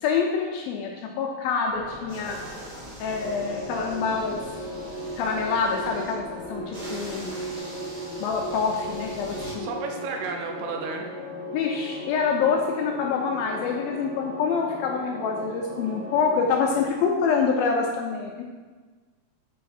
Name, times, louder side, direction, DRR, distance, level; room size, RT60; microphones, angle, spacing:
voice 1, 0.0-2.4 3.0-4.4 5.2-7.3 8.2-9.7 11.5-18.4, left 5 dB, 80° left, 0 dB, 2.1 m, -26 dB
sound 1, 1.7-7.6, equal, 10° left, 0.3 m, -44 dB
sound 2, 2.1-6.1 6.7-9.6, equal, 45° right, 1.7 m, -44 dB
sound 3, 3.1-16.9, equal, 65° right, 4.5 m, -37 dB
voice 2, 9.6-11.1, right 4 dB, 85° right, 2 dB, 1.9 m, -32 dB
8.1 x 4.7 x 4.3 m, 1.3 s
omnidirectional pair, 4.9 m